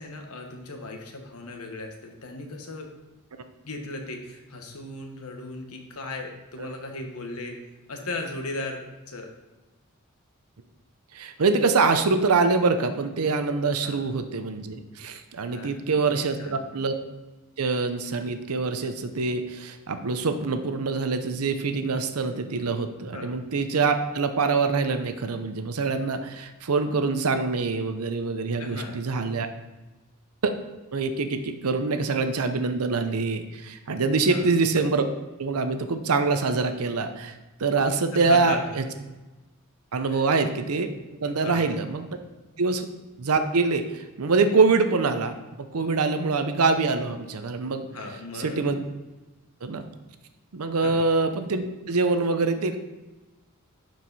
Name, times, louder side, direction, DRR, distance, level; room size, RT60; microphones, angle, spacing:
voice 1, 0.0-2.9 3.6-7.6 7.9-9.3 13.8-14.0 15.4-15.7 16.0-16.6 23.1-23.3 28.6-29.0 34.2-34.4 38.1-38.6 40.0-40.2 41.2-41.6 47.9-48.6 50.8-51.0, left 2 dB, 90° left, 2 dB, 1.4 m, -37 dB
voice 2, 11.1-16.9 17.6-29.5 30.4-30.5 30.9-35.1 35.4-37.3 37.6-38.8 39.9-40.9 41.2-42.1 42.6-42.9 43.2-45.4 45.7-47.9 48.3-48.8 49.6-49.8 50.5-52.8, right 4 dB, 90° right, 8 dB, 0.7 m, -25 dB
11.5 x 4.7 x 4.1 m, 1.1 s
head